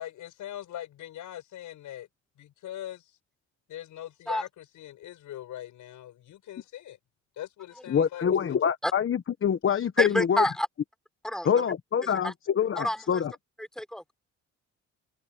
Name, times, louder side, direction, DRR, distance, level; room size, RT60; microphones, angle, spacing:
voice 1, 0.0-2.1 2.4-3.1 3.7-7.0 7.3-8.4, left 12 dB, 80° left, 6.9 m, -41 dB
voice 2, 7.9-10.5 11.4-13.3, left 8 dB, 45° left, 1.2 m, -25 dB
voice 3, 10.0-10.7 11.2-11.7 12.0-12.3 12.8-13.2 13.6-14.0, equal, ahead, 4.5 m, -29 dB
cardioid pair, 90°, 30 cm